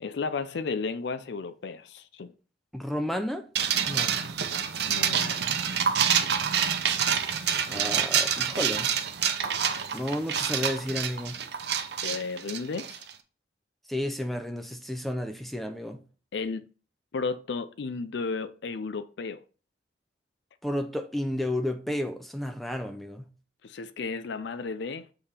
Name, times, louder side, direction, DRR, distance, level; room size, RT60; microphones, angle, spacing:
voice 1, 0.0-2.3 4.9-5.4 12.0-13.0 16.3-16.7 17.1-19.4 23.6-25.1, left 4 dB, 70° left, 0.4 m, -33 dB
voice 2, 2.7-3.5 3.9-4.2 7.7-8.9 9.9-11.4 13.9-16.0 20.6-23.3, left 1 dB, ahead, 0.4 m, -32 dB
sound 1, 3.5-13.1, right 8 dB, 60° right, 0.7 m, -27 dB
6.8 x 3.5 x 4.3 m
head